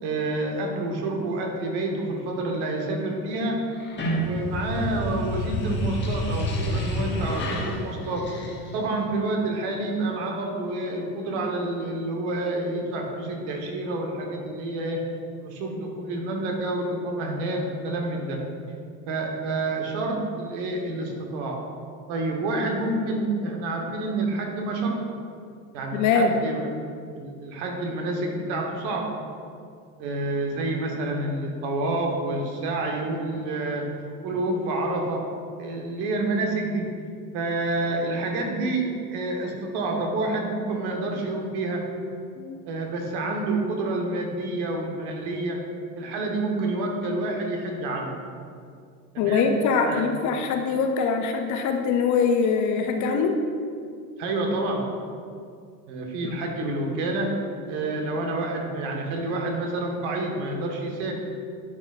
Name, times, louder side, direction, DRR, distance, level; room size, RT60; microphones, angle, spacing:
voice 1, 0.0-3.6 4.1-8.2 8.7-15.0 15.4-18.4 19.1-21.6 22.1-25.0 25.7-26.7 27.1-29.2 30.0-33.9 34.2-35.2 35.6-36.9 37.3-38.9 39.1-41.9 42.6-45.6 46.0-48.2 49.1-49.5 49.9-50.1 54.2-54.8 55.9-57.3 57.7-61.1, right 2 dB, 55° right, 1 dB, 1.3 m, -28 dB
sound 1, 3.7-9.0, equal, 25° left, 1.2 m, -29 dB
voice 2, 25.9-26.3 42.4-42.6 49.2-53.4 56.2-56.4, left 5 dB, 40° left, 4 dB, 0.6 m, -23 dB
10.5 x 4.1 x 2.4 m, 2.3 s
hypercardioid pair, 85°, 48 cm